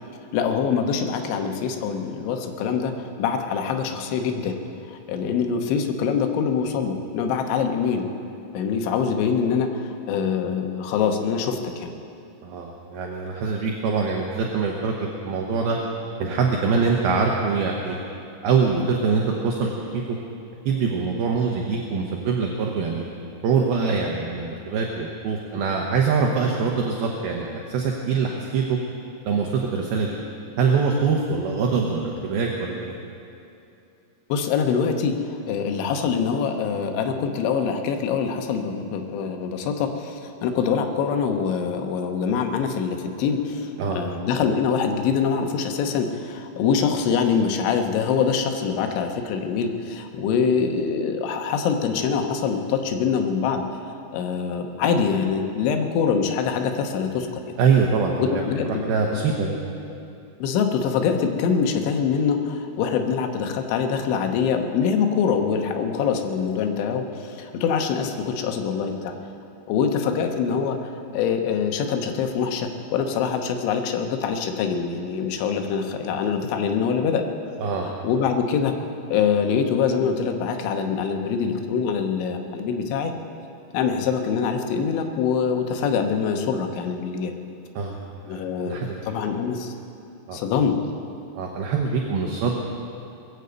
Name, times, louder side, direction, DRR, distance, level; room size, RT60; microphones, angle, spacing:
voice 1, 0.3-2.9 3.2-4.6 4.9-8.1 8.5-11.9 34.3-57.6 58.2-58.8 60.4-69.1 69.7-77.3 77.8-78.7 79.1-83.1 83.7-87.3 88.3-89.7 90.3-90.8, left 6 dB, 80° left, 5 dB, 3.4 m, -24 dB
voice 2, 12.4-15.8 16.2-18.0 18.4-20.2 20.7-23.0 23.4-28.8 29.3-30.2 30.6-33.0 43.8-44.0 57.6-58.4 58.7-59.6 77.6-77.9 87.8-88.0 88.3-89.0 90.3-90.4 91.3-92.6, right 5 dB, 70° right, 0 dB, 2.5 m, -24 dB
22.0 x 8.2 x 8.0 m, 2.7 s
omnidirectional pair, 5.4 m